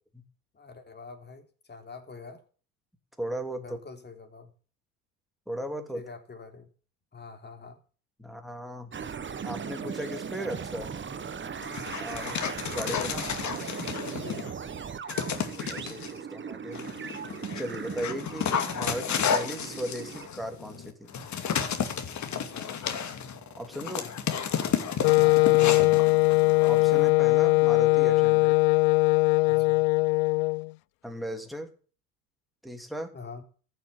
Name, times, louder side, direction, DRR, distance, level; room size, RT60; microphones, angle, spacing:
voice 1, 0.5-2.4 3.6-4.5 5.9-6.7 7.1-7.8 14.2-14.6 22.3-22.7 25.1-25.9 29.4-29.8 33.1-33.4, left 4 dB, 25° left, 5 dB, 3.4 m, -44 dB
voice 2, 3.2-3.8 5.5-6.0 8.2-8.9 9.4-10.9 12.0-12.4 12.7-13.3 15.7-16.8 17.5-21.1 23.6-24.1 26.3-28.6 31.0-31.7 32.6-33.1, equal, ahead, 4 dB, 3.0 m, -36 dB
sound 1, 8.9-20.3, right 6 dB, 25° right, 1.4 m, -38 dB
Dog, 11.6-14.5 15.1-16.1 16.7-27.1, left 7 dB, 40° left, 2.3 m, -32 dB
Wind instrument woodwind instrument, 25.0-30.7, left 26 dB, 70° left, 0.5 m, -21 dB
14.5 x 6.8 x 8.4 m, 0.41 s
hypercardioid pair, 75°, 43 cm